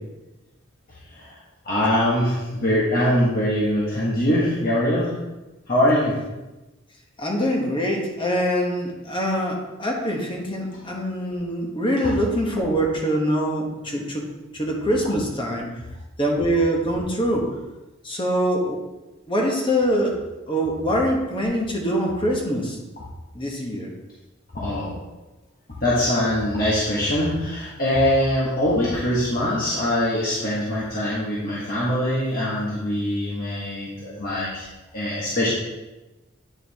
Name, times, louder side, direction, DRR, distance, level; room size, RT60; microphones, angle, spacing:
voice 1, 1.6-5.2 5.7-6.2 24.5-25.0 25.8-34.7 34.9-35.5, left 1 dB, 45° left, -8 dB, 1.4 m, -23 dB
voice 2, 7.2-15.8 16.2-17.5 18.0-18.8 19.3-20.2 20.5-22.8 23.3-23.9, equal, 25° left, 0 dB, 1.1 m, -24 dB
9.2 x 4.7 x 3.5 m, 1.1 s
head